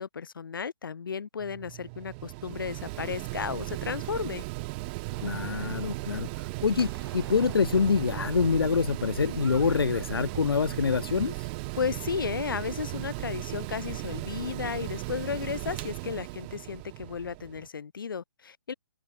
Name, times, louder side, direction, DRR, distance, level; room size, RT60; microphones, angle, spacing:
voice 1, 0.0-4.4 11.7-18.7, left 6 dB, 65° left, 0.8 m, -34 dB
Mechanical fan, 1.4-17.7, right 27 dB, 25° right, 1.3 m, -37 dB
sound 1, 5.1-10.9 11.3-12.6, right 3 dB, 80° right, 6.4 m, -52 dB
voice 2, 5.2-11.5, left 5 dB, 80° left, 0.4 m, -26 dB
figure-of-eight pair, 140°, 12 cm